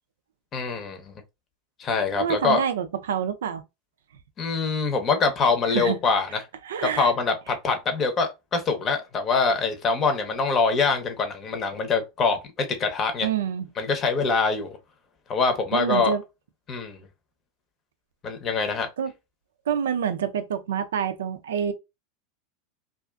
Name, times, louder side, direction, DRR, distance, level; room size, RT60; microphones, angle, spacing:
voice 1, 0.5-1.1 1.8-2.6 4.4-6.4 6.8-13.3 13.8-14.8 15.3-16.1 16.7-17.0 18.2-18.9, left 4 dB, 35° left, 0.7 m, -24 dB
voice 2, 2.2-3.6 5.7-6.0 6.7-7.1 13.2-13.7 15.7-16.2 19.0-19.1 19.7-21.7, right 8 dB, 80° right, 0.4 m, -27 dB
2.4 x 2.4 x 2.2 m
hypercardioid pair, 100°, 0 cm